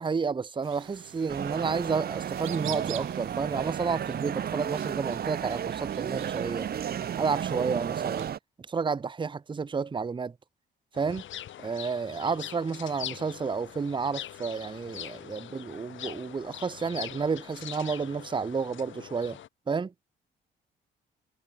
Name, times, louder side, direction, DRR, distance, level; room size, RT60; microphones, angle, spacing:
voice 1, 0.0-6.7 7.2-8.3 8.7-10.3 10.9-11.2 11.6-19.4 19.7-19.9, right 5 dB, 25° right, 0.8 m, -31 dB
sound 1, 0.6-8.3, right 14 dB, 85° right, 3.9 m, -46 dB
sound 2, 1.3-8.4, right 9 dB, 50° right, 1.0 m, -33 dB
sound 3, 10.9-19.5, left 12 dB, 75° left, 6.5 m, -42 dB
cardioid pair, 90°, 20 cm